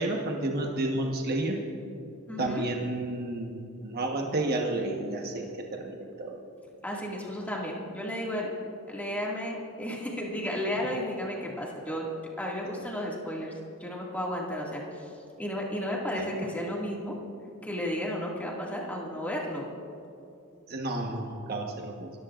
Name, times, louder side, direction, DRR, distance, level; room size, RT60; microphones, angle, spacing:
voice 1, 0.0-1.6 2.4-6.4 12.6-12.7 16.2-16.3 20.7-22.1, right 2 dB, 45° right, 1 dB, 1.3 m, -31 dB
voice 2, 2.3-2.7 6.8-8.5 8.9-12.0 12.4-13.5 13.8-15.1 15.4-17.2 17.6-19.7, equal, 5° left, -3 dB, 2.1 m, -33 dB
29.5 x 14.0 x 2.5 m, 2.6 s
head